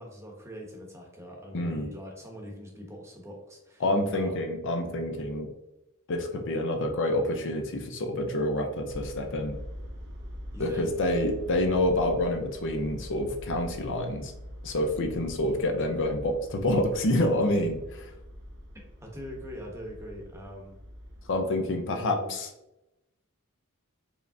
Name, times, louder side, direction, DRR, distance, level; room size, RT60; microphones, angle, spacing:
voice 1, 0.0-3.8 4.1-4.5 10.5-10.9 11.6-11.7 19.0-20.8 21.9-22.4, equal, 15° right, 0 dB, 0.9 m, -42 dB
voice 2, 1.5-1.9 3.8-5.5 6.1-9.6 10.6-14.3 14.6-18.1 21.3-22.5, left 1 dB, 55° left, 4 dB, 0.6 m, -27 dB
sound 1, 8.9-21.4, equal, 50° right, 0.7 m, -44 dB
4.7 x 3.3 x 2.7 m, 0.91 s
head